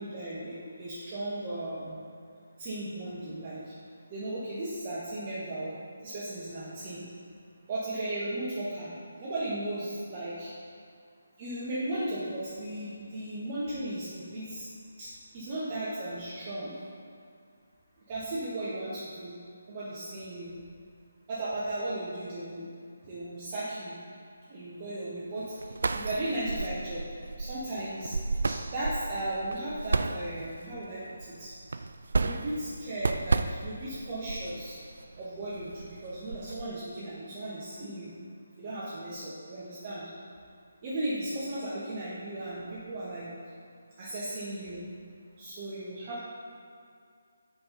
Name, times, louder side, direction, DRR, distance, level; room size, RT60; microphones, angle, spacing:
voice 1, 0.0-2.1 2.6-3.7 4.1-5.7 6.0-7.0 7.7-8.9 9.2-10.5 11.4-14.7 15.0-15.1 15.3-16.8 18.1-19.3 19.7-20.6 21.3-22.7 23.0-24.0 24.5-27.0 27.4-28.2 28.4-31.5 32.2-34.8 35.2-38.1 38.6-40.1 40.8-43.3 44.0-44.8 45.4-46.2, right 1 dB, 30° right, -10 dB, 1.6 m, -36 dB
sound 1, 25.4-36.7, right 3 dB, 60° right, 0.3 m, -33 dB
8.6 x 6.1 x 4.0 m, 2.3 s
figure-of-eight pair, 150°, 0 cm